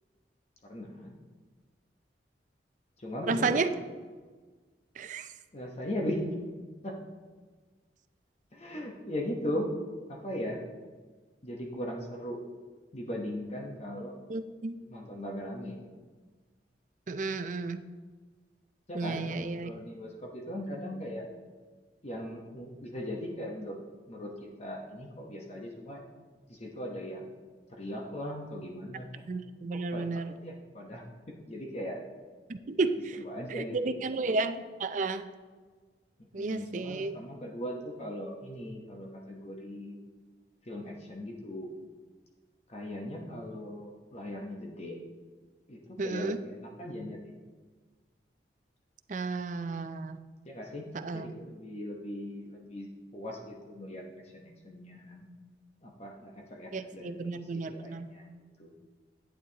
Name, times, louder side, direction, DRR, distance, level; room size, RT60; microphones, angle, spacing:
voice 1, 0.6-1.1 3.0-3.6 5.5-6.2 6.8-7.0 8.5-9.7 10.1-10.6 11.4-12.4 12.9-14.1 14.8-15.8 18.9-21.2 22.0-23.8 24.1-24.3 24.6-26.0 26.5-27.3 27.7-29.1 29.7-31.0 31.5-32.0 33.2-34.2 36.3-40.0 40.7-41.7 42.7-45.0 45.7-47.3 50.4-50.9 51.1-54.1 54.3-55.2 55.8-58.3 58.6-58.7, left 1 dB, 35° left, 0 dB, 1.0 m, -39 dB
voice 2, 3.3-3.7 5.0-5.3 14.3-14.8 17.1-17.8 18.9-19.7 29.3-30.4 32.5-33.2 33.5-35.3 36.3-37.1 46.0-46.4 49.1-50.2 51.0-51.3 56.7-58.1, right 3 dB, 45° right, 9 dB, 0.5 m, -32 dB
11.0 x 8.7 x 2.9 m, 1.4 s
head